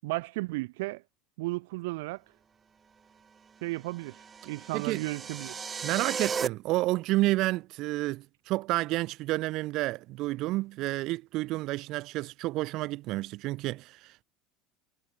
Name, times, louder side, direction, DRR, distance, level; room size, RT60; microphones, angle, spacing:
voice 1, 0.0-1.0 1.4-2.2 3.6-5.5, right 22 dB, 75° right, 5.8 m, -34 dB
sound 1, 3.9-6.5, right 6 dB, 15° right, 2.0 m, -35 dB
voice 2, 4.7-5.0 5.8-14.2, right 18 dB, 45° right, 5.8 m, -30 dB
cardioid pair, 170°, 0 cm